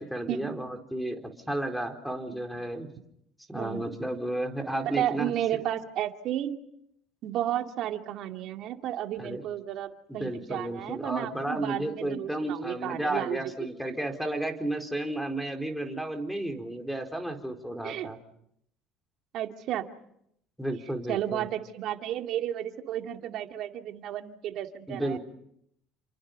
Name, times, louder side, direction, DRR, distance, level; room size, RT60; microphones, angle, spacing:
voice 1, 0.0-2.9 3.5-5.6 9.2-9.4 10.1-18.2 20.6-21.5 24.9-25.2, right 1 dB, ahead, 3 dB, 4.4 m, -33 dB
voice 2, 4.8-6.5 7.2-13.4 17.8-18.1 19.3-19.9 21.1-25.2, right 11 dB, 60° right, 5 dB, 2.4 m, -32 dB
29.0 x 27.0 x 5.5 m, 0.75 s
supercardioid pair, 95°, 0 cm